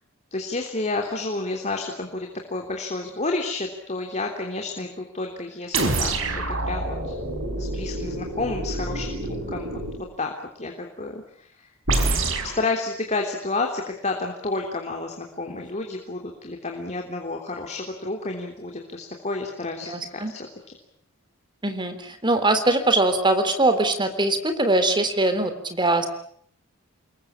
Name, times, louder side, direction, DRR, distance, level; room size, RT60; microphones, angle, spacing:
voice 1, 0.3-6.2 6.5-7.2 7.5-9.7 10.0-11.7 12.4-20.5, left 3 dB, 35° left, 2 dB, 3.4 m, -30 dB
sound 1, 5.7-10.0 11.9-12.6, right 2 dB, 65° right, 5.2 m, -27 dB
voice 2, 19.9-20.3 21.6-26.1, right 2 dB, 20° right, 9 dB, 3.6 m, -22 dB
27.5 x 22.5 x 8.7 m, 0.63 s
head